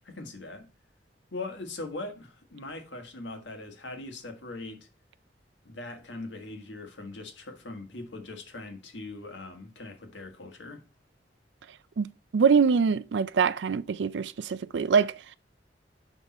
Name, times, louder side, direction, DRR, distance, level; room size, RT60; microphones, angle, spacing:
voice 1, 0.0-0.7 1.3-4.9 5.6-10.8, left 2 dB, 90° left, 1.7 m, -41 dB
voice 2, 12.3-15.1, right 6 dB, 75° right, 0.4 m, -24 dB
9.9 x 3.7 x 4.1 m
head